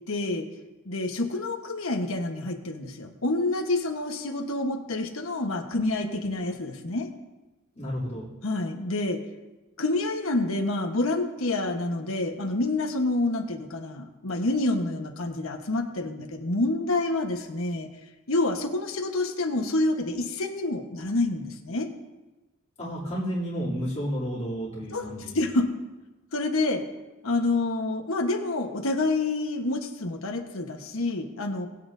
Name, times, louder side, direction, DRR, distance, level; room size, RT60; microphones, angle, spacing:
voice 1, 0.1-0.5 0.9-7.1 8.4-9.2 9.8-17.9 18.3-21.9 24.9-25.6 26.3-26.8 27.2-31.7, left 2 dB, 85° left, 4 dB, 1.3 m, -28 dB
voice 2, 7.7-8.3 22.8-25.4, equal, 35° left, -10 dB, 3.1 m, -31 dB
20.5 x 8.8 x 2.7 m, 1.1 s
head